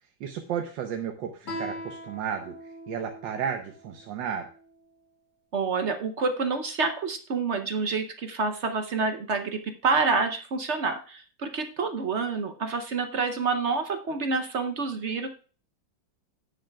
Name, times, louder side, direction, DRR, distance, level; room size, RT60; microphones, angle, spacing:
voice 1, 0.0-4.5, right 8 dB, 75° right, 5 dB, 1.5 m, -33 dB
Guitar, 1.4-4.7, equal, 65° left, 4.1 m, -41 dB
voice 2, 5.5-15.3, right 4 dB, 60° right, 7 dB, 0.7 m, -28 dB
17.0 x 6.5 x 2.3 m, 0.38 s
omnidirectional pair, 2.1 m